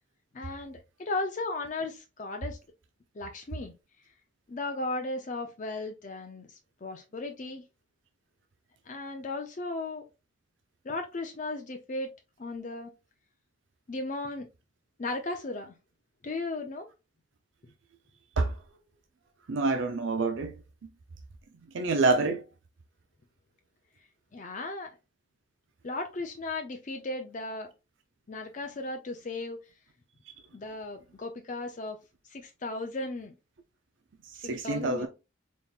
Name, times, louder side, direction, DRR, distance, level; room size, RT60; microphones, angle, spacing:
voice 1, 0.3-2.6 3.1-3.7 4.5-7.6 8.9-10.0 10.8-12.1 12.4-12.9 13.9-14.5 15.0-15.7 16.2-16.9 24.3-25.0 25.8-27.7 28.3-29.6 30.5-32.0 32.2-33.3 34.4-35.1, left 2 dB, 40° left, 0.5 m, -36 dB
voice 2, 19.5-20.5 21.7-22.4 34.4-35.1, right 3 dB, 70° right, 0.5 m, -27 dB
4.2 x 3.5 x 2.3 m
head